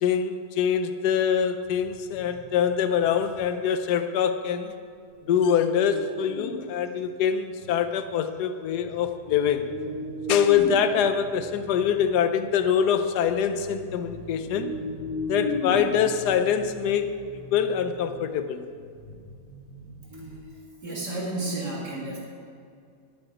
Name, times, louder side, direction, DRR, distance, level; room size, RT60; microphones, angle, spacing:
voice 1, 0.0-4.7 5.3-9.7 10.3-14.7 15.3-17.1 17.5-18.6, left 8 dB, 75° left, 9 dB, 1.3 m, -24 dB
sound 1, 1.6-3.5 5.2-6.7 7.0-7.1 7.6-8.1 8.6-20.4, left 1 dB, 30° left, 2.3 m, -37 dB
voice 2, 20.1-22.2, right 2 dB, 75° right, -4 dB, 2.7 m, -33 dB
13.0 x 7.0 x 9.3 m, 2.3 s
omnidirectional pair, 1.8 m